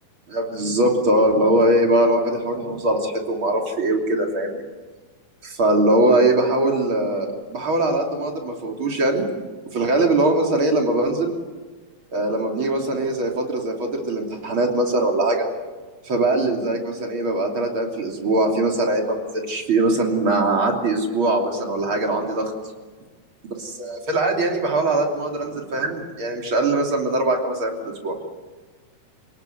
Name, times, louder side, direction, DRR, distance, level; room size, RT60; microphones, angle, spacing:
voice 1, 0.3-4.6 5.4-9.2 9.7-11.3 12.1-15.5 16.0-22.5 23.5-28.1, right 2 dB, 35° right, 1 dB, 3.6 m, -21 dB
28.0 x 18.5 x 9.5 m, 1.3 s
omnidirectional pair, 4.2 m